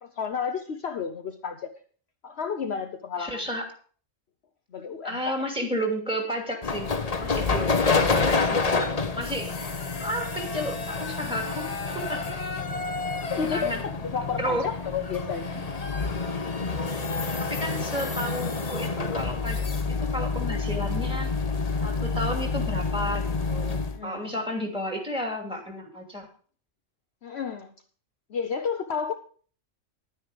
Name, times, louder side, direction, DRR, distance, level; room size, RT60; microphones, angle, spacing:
voice 1, 0.0-1.7 2.2-3.5 4.7-5.4 13.2-15.8 23.9-24.4 27.2-27.7 28.3-29.1, left 6 dB, 55° left, 1.0 m, -32 dB
voice 2, 3.2-3.7 5.0-6.9 7.2-9.5 10.0-11.7 11.9-12.2 13.5-13.8 14.4-14.7 17.4-19.6 19.9-21.3 21.8-26.3, equal, 5° right, 2.7 m, -32 dB
sound 1, 6.6-24.0, left 4 dB, 30° left, 0.9 m, -28 dB
11.0 x 9.8 x 5.1 m
omnidirectional pair, 1.4 m